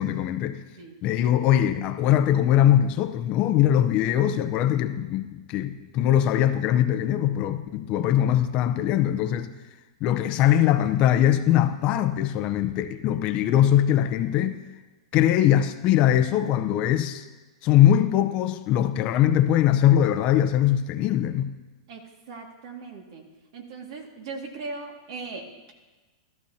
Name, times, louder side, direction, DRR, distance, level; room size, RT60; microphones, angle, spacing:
voice 1, 0.0-0.6 1.0-9.5 10.0-14.6 15.1-17.3 17.6-21.5, left 11 dB, 40° left, 9 dB, 0.7 m, -21 dB
voice 2, 21.9-23.3 23.5-25.7, right 3 dB, 65° right, 2 dB, 2.1 m, -39 dB
14.0 x 13.5 x 2.8 m, 1.2 s
supercardioid pair, 135°, 3 cm